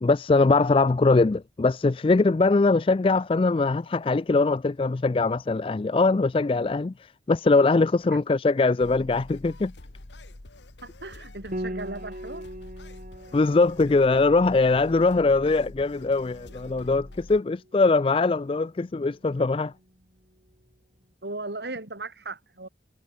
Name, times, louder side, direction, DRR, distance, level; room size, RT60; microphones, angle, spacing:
voice 1, 0.0-9.7 13.3-19.7, left 3 dB, 30° left, 0.4 m, -22 dB
sound 1, 8.8-17.4, left 1 dB, 90° left, 1.6 m, -46 dB
voice 2, 10.8-12.5 21.2-22.7, right 2 dB, 70° right, 3.0 m, -37 dB
Piano, 11.5-20.8, equal, 45° right, 5.2 m, -42 dB
head